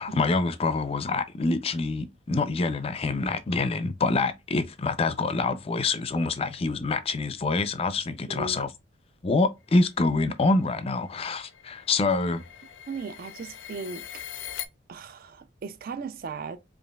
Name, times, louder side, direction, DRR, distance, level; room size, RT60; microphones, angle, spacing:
voice 1, 0.0-8.7 9.2-12.4, left 3 dB, 35° left, 0.4 m, -26 dB
voice 2, 8.3-8.6 12.9-14.2 14.9-16.6, right 4 dB, 50° right, 0.4 m, -37 dB
sound 1, 9.9-14.7, left 10 dB, 90° left, 0.4 m, -42 dB
5.1 x 2.5 x 2.3 m
head